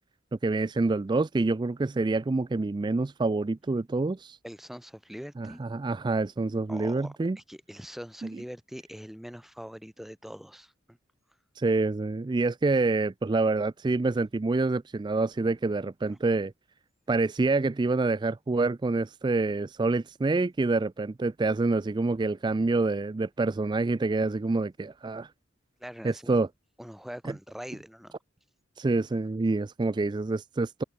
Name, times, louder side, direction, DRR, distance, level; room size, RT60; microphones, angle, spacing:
voice 1, 0.4-4.4 5.4-7.4 8.2-8.3 11.6-16.5 17.1-25.3 26.0-26.5 28.8-30.8, right 3 dB, 25° right, 0.3 m, -27 dB
voice 2, 4.4-5.6 6.7-11.0 16.1-16.2 25.8-26.4 26.8-28.2, equal, ahead, 0.9 m, -43 dB
head